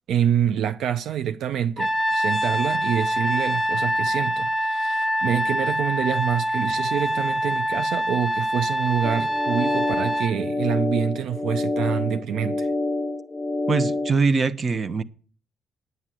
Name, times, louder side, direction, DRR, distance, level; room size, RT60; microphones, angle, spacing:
voice 1, 0.1-12.7, right 9 dB, 80° right, 0.5 m, -26 dB
Trumpet, 1.8-10.3, equal, 5° left, 0.9 m, -25 dB
sound 1, 9.0-14.1, left 2 dB, 20° left, 1.3 m, -27 dB
voice 2, 13.7-15.0, right 4 dB, 40° right, 0.9 m, -22 dB
9.8 x 9.4 x 7.6 m
cardioid pair, 90°, 0 cm